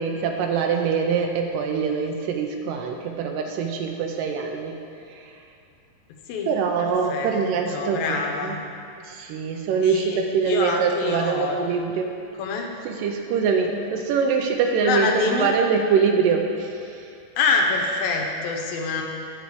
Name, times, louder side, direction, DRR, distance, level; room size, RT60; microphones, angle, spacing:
voice 1, 0.0-4.7 5.1-5.3 6.5-8.5 9.0-12.1 12.9-17.1, right 5 dB, 80° right, 3 dB, 2.1 m, -24 dB
voice 2, 6.8-7.4 7.7-8.6 9.8-11.6 12.4-12.7 14.8-15.5 17.4-19.0, left 4 dB, 85° left, 2 dB, 2.6 m, -26 dB
9.2 x 4.7 x 6.8 m, 2.5 s
omnidirectional pair, 4.1 m